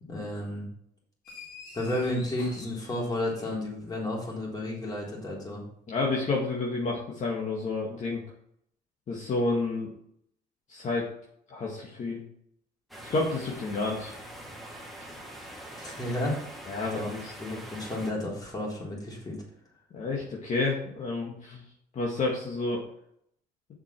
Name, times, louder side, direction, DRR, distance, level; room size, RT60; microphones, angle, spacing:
voice 1, 0.1-0.7 1.7-5.6 15.8-16.4 16.9-17.1 17.4-19.4, left 1 dB, 25° left, -3 dB, 4.0 m, -32 dB
sound 1, 1.2-3.8, left 4 dB, 75° left, 3.7 m, -47 dB
voice 2, 5.9-8.2 9.1-9.9 10.7-11.1 11.5-12.2 13.0-14.1 16.7-17.3 19.9-21.6 21.9-22.8, left 3 dB, 45° left, -3 dB, 2.0 m, -30 dB
sound 2, 12.9-18.1, right 1 dB, ahead, 1.9 m, -44 dB
7.5 x 5.9 x 6.1 m, 0.69 s
cardioid pair, 110°, 17 cm